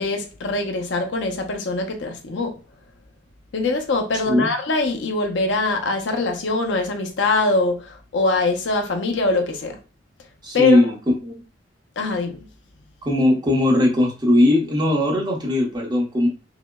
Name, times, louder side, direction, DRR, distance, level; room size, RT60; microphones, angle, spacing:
voice 1, 0.0-2.6 3.5-9.8 10.5-10.9 12.0-12.5, left 3 dB, 70° left, 0.6 m, -23 dB
voice 2, 10.4-10.9 11.2-11.4 13.0-16.3, left 1 dB, 25° right, 0.8 m, -18 dB
4.9 x 2.1 x 2.2 m
head